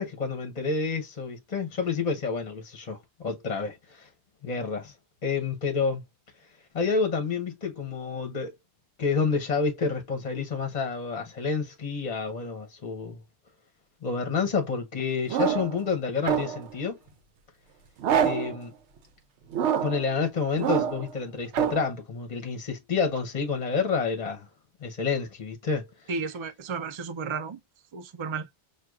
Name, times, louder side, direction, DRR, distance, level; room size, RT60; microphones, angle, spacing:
voice 1, 0.0-3.0 3.2-4.1 4.4-4.9 5.2-6.0 6.7-8.5 9.0-13.2 14.0-17.0 18.2-18.7 19.8-24.5 24.8-25.9, left 5 dB, 40° left, 0.9 m, -29 dB
sound 1, 15.3-15.8 16.2-16.7 18.0-18.6 19.5-20.1 20.6-21.1 21.5-21.9, right 8 dB, 85° right, 0.9 m, -26 dB
voice 2, 26.1-27.6 27.9-28.5, right 5 dB, 35° right, 0.5 m, -33 dB
6.2 x 2.4 x 2.3 m
omnidirectional pair, 1.1 m